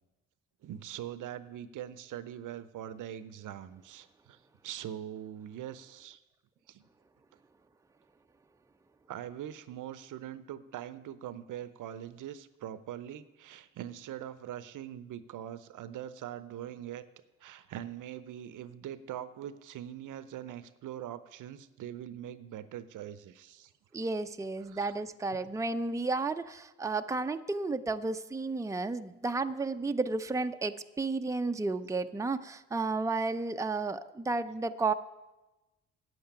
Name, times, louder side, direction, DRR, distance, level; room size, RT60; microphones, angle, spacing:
voice 1, 0.6-4.4 4.6-6.2 6.7-6.9 9.1-17.0 17.4-23.7 24.7-24.9, right 11 dB, 65° right, 15 dB, 0.7 m, -42 dB
voice 2, 23.9-34.9, right 3 dB, 10° right, 8 dB, 0.6 m, -32 dB
9.1 x 7.9 x 8.9 m, 1.1 s
supercardioid pair, 55°, 33 cm